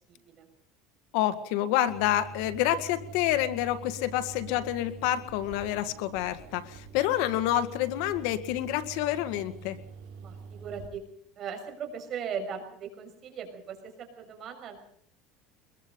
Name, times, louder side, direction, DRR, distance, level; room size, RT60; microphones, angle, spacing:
voice 1, 0.1-0.5 10.2-11.0 11.4-14.8, right 6 dB, 40° right, 5 dB, 6.2 m, -38 dB
voice 2, 1.1-9.8, left 13 dB, 70° left, 11 dB, 1.9 m, -28 dB
sound 1, 1.9-10.9, right 5 dB, 65° right, 7.7 m, -45 dB
24.5 x 22.0 x 5.4 m, 0.64 s
cardioid pair, 150°, 0 cm